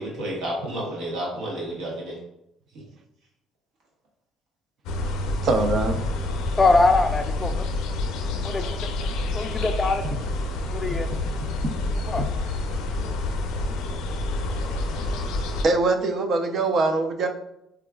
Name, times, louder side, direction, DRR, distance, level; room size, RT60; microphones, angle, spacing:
voice 1, 0.0-2.2 2.7-2.8 5.0-5.1 8.6-8.7, right 1 dB, 80° right, -4 dB, 1.0 m, -31 dB
sound 1, 4.9-15.6, left 2 dB, 80° left, 0.4 m, -28 dB
voice 2, 5.4-6.0 12.2-12.3 15.6-17.3, right 3 dB, 50° right, 6 dB, 0.4 m, -22 dB
voice 3, 6.6-7.7 8.4-8.9 9.3-10.2 10.7-11.1 12.1-12.3 13.0-13.2, left 3 dB, 20° left, 7 dB, 0.3 m, -23 dB
4.6 x 2.3 x 2.2 m, 0.80 s
cardioid pair, 115°, 0 cm